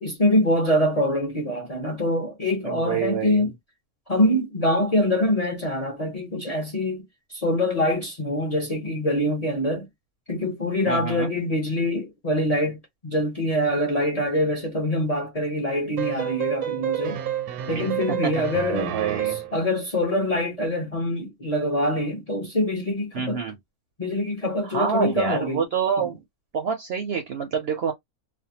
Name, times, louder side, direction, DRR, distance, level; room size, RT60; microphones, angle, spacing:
voice 1, 0.0-3.5 4.1-9.9 10.3-17.2 17.7-18.9 19.2-23.4 24.0-25.6, left 1 dB, 40° left, 0.6 m, -24 dB
voice 2, 2.6-3.5 10.9-11.3 18.2-18.4 18.9-19.4 23.1-23.6 24.6-26.2 26.5-27.9, right 6 dB, 60° right, 0.6 m, -27 dB
sound 1, 16.0-19.6, right 11 dB, 90° right, 1.1 m, -29 dB
2.5 x 2.1 x 2.7 m
omnidirectional pair, 1.5 m